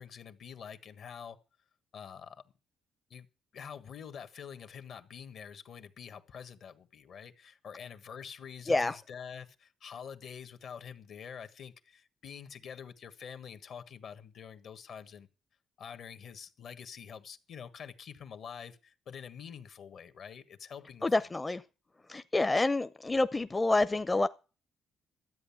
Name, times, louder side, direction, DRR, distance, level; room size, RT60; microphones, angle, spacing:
voice 1, 0.0-1.4 1.9-2.4 3.1-3.3 3.5-15.3 15.8-21.3, left 7 dB, 65° left, 1.4 m, -46 dB
voice 2, 21.0-21.6 22.1-24.3, left 2 dB, 20° left, 0.6 m, -28 dB
12.5 x 8.5 x 7.2 m
cardioid pair, 90°, 0 cm